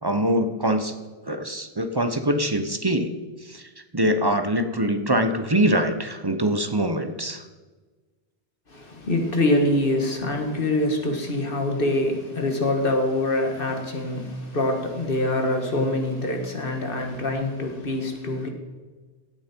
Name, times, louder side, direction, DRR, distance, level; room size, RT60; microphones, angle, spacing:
voice 1, 0.0-0.9 1.3-3.1 3.5-3.6 3.9-7.4, right 1 dB, 25° right, 8 dB, 0.8 m, -23 dB
voice 2, 8.7-18.5, left 1 dB, 60° left, 4 dB, 2.0 m, -25 dB
16.0 x 8.9 x 4.5 m, 1.3 s
omnidirectional pair, 1.1 m